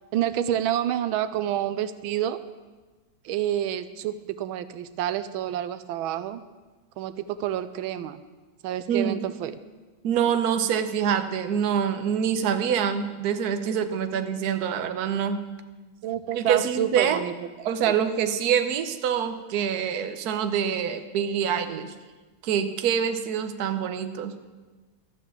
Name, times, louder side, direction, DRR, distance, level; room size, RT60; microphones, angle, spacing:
voice 1, 0.1-2.4 3.2-6.4 7.0-8.2 8.6-9.6 16.0-17.3, right 11 dB, 90° right, 13 dB, 1.4 m, -28 dB
voice 2, 10.0-15.4 16.3-17.2 17.6-21.9 22.4-24.3, right 8 dB, 60° right, 8 dB, 1.2 m, -25 dB
13.5 x 9.3 x 7.3 m, 1.3 s
omnidirectional pair, 2.2 m